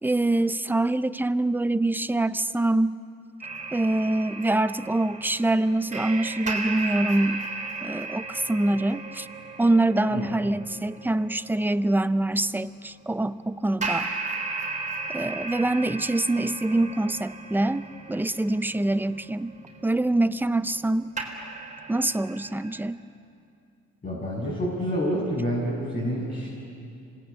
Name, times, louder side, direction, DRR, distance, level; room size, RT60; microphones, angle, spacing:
voice 1, 0.0-3.0 3.7-7.4 7.8-9.3 9.6-14.1 15.1-19.5 19.8-21.1 21.9-23.0, right 2 dB, 5° right, 13 dB, 0.6 m, -25 dB
sound 1, 3.4-12.2 13.8-20.9 21.2-22.8, right 3 dB, 25° right, 4.0 m, -36 dB
voice 2, 24.0-26.5, equal, 30° left, -6 dB, 6.9 m, -28 dB
26.5 x 19.0 x 8.5 m, 2.5 s
cardioid pair, 90°, 30 cm